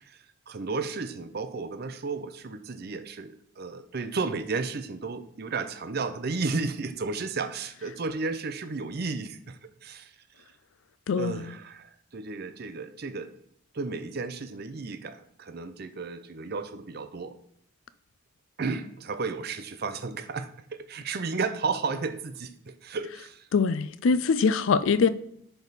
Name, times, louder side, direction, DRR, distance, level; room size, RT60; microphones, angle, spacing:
voice 1, 0.0-10.4 11.2-13.3 13.7-17.3 18.6-23.5 24.5-24.6, right 4 dB, 50° right, 0.5 m, -33 dB
voice 2, 11.1-11.5 23.5-25.1, left 5 dB, 70° left, 0.4 m, -23 dB
10.5 x 3.5 x 4.0 m
head